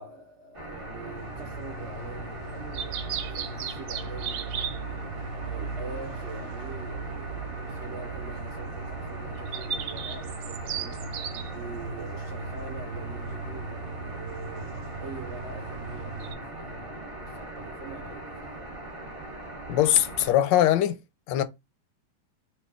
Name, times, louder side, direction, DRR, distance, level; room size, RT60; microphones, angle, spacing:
voice 1, 0.0-18.7, right 3 dB, 60° right, 0.7 m, -44 dB
sound 1, 0.5-20.3, right 1 dB, 25° right, 0.9 m, -40 dB
sound 2, 0.7-16.3, right 5 dB, 90° right, 1.3 m, -37 dB
voice 2, 19.7-21.0 21.3-21.4, left 12 dB, 85° left, 1.2 m, -21 dB
3.3 x 2.3 x 3.5 m
omnidirectional pair, 1.9 m